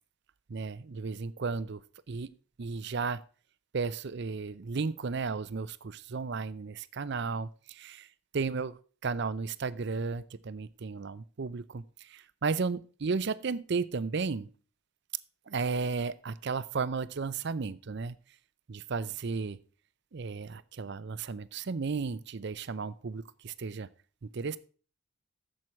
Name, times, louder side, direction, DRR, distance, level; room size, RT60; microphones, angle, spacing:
voice 1, 0.5-1.8 2.1-3.2 3.7-8.1 8.3-14.5 15.5-18.2 18.7-19.6 20.1-23.9 24.2-24.6, right 4 dB, 50° right, 17 dB, 0.5 m, -34 dB
7.7 x 7.6 x 5.7 m, 0.40 s
head